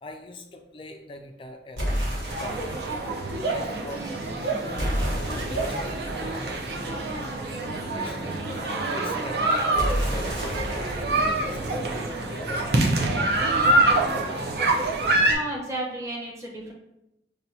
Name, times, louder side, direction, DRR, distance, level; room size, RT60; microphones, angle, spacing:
voice 1, 0.0-2.0 2.3-2.8 3.5-4.1 4.3-4.8 5.1-5.8 6.1-6.6 7.8-8.4 8.9-13.4, left 1 dB, 30° left, 4 dB, 0.4 m, -42 dB
sound 1, 1.8-3.0 4.8-7.5 9.8-12.5, equal, 75° right, 1.2 m, -31 dB
gathering on the beach, 2.3-15.3, right 2 dB, 60° right, 0.5 m, -26 dB
voice 2, 15.3-16.7, right 1 dB, 15° right, -3 dB, 0.7 m, -33 dB
5.7 x 2.3 x 2.7 m, 0.87 s
head